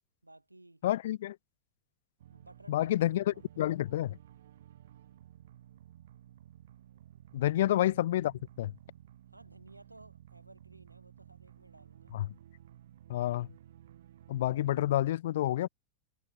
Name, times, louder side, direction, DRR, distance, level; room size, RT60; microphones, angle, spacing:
voice 1, 0.2-0.8 2.3-2.9 3.3-3.7 7.5-7.6 9.3-12.1, right 2 dB, 85° right, 5.6 m, -56 dB
voice 2, 0.8-1.4 2.7-4.2 7.3-8.7 12.1-12.3 13.1-13.5 14.3-15.7, left 13 dB, 55° left, 0.4 m, -29 dB
sound 1, 2.2-15.2, right 12 dB, 60° right, 6.9 m, -55 dB
figure-of-eight pair, 90°, 0 cm